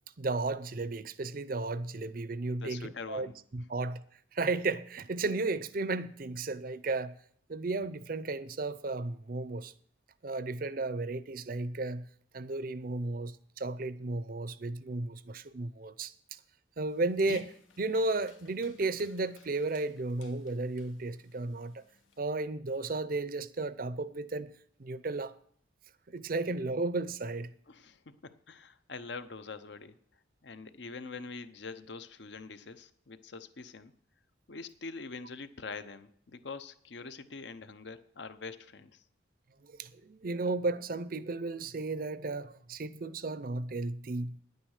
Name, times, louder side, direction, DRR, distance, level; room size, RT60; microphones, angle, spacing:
voice 1, 0.2-4.0 4.3-7.1 7.5-9.7 10.2-12.1 12.3-16.4 16.8-21.8 22.2-24.5 24.8-25.3 26.1-27.5 39.6-44.4, right 3 dB, 45° right, 0.6 m, -34 dB
voice 2, 2.5-3.7 27.7-30.0 30.4-33.9 34.5-39.0, left 4 dB, 65° left, 0.8 m, -44 dB
Dog, 16.9-22.2, left 3 dB, 85° left, 1.3 m, -54 dB
10.5 x 9.1 x 6.5 m
head